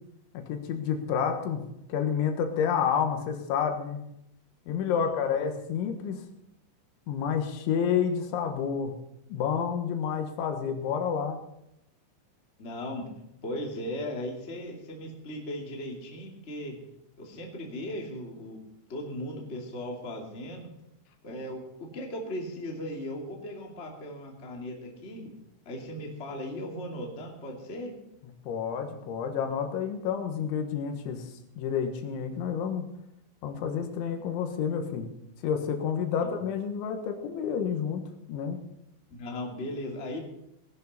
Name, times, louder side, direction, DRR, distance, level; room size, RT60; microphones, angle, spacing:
voice 1, 0.4-1.6 1.9-4.0 4.7-6.2 7.1-9.0 9.3-11.4 28.5-32.9 33.4-35.1 35.4-38.0 38.3-38.6, left 7 dB, 80° left, 5 dB, 3.7 m, -29 dB
voice 2, 4.9-5.5 12.6-13.1 13.4-16.7 17.2-18.6 18.9-20.7 21.2-25.3 25.6-27.9 36.2-36.3 39.1-40.2, left 1 dB, 25° left, -1 dB, 1.7 m, -37 dB
19.0 x 11.0 x 4.2 m, 0.80 s
omnidirectional pair, 5.4 m